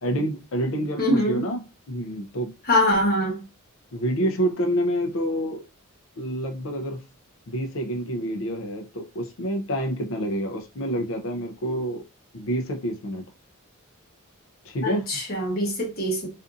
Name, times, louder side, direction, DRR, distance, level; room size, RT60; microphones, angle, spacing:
voice 1, 0.0-1.6 1.9-2.5 3.9-5.7 6.2-7.0 7.5-12.0 12.3-13.2 14.6-15.0, equal, 65° left, 0.5 m, -28 dB
voice 2, 1.0-1.4 2.7-3.4 14.8-16.3, left 1 dB, 45° left, 1.0 m, -23 dB
2.5 x 2.5 x 2.4 m
head